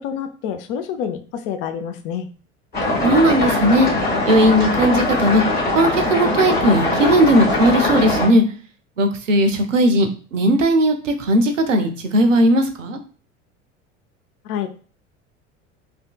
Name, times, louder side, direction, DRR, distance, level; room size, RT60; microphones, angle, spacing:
voice 1, 0.0-2.3 14.4-14.7, left 8 dB, 45° left, 8 dB, 0.5 m, -27 dB
sound 1, 2.7-8.3, left 2 dB, 25° left, 1.5 m, -21 dB
voice 2, 3.0-3.9 4.2-5.4 5.8-8.4 9.0-13.0, right 1 dB, 75° right, 7 dB, 0.6 m, -17 dB
3.3 x 2.7 x 2.2 m, 0.39 s
figure-of-eight pair, 65°, 38 cm